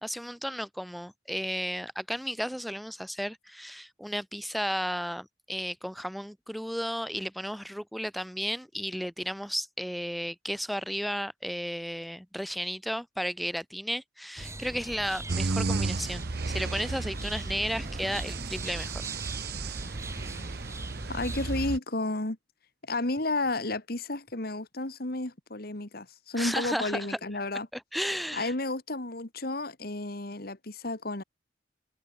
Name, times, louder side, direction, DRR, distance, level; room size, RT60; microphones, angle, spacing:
voice 1, 0.0-19.0 26.4-27.2 27.7-28.5, equal, ahead, 3.5 m, -34 dB
sound 1, 14.4-21.7, right 1 dB, 15° right, 2.5 m, -41 dB
sound 2, 15.3-21.8, right 3 dB, 60° right, 0.7 m, -34 dB
voice 2, 21.1-22.4 22.9-27.7 28.3-31.2, left 2 dB, 55° left, 2.2 m, -32 dB
head